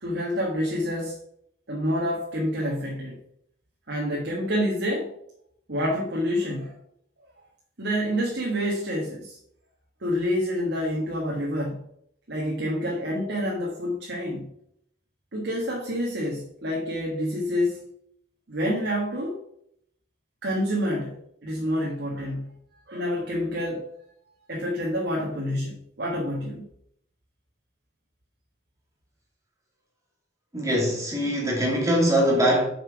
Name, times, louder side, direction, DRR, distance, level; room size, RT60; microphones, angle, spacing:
voice 1, 0.0-1.2 1.7-3.2 3.9-5.2 5.7-6.8 7.8-9.4 10.0-11.8 12.3-14.5 15.3-17.8 18.5-19.4 20.4-22.6 22.9-23.9 24.5-26.6, equal, 65° right, 1.5 m, -28 dB
voice 2, 30.5-32.7, equal, 20° right, 2.5 m, -22 dB
6.9 x 5.9 x 5.0 m
head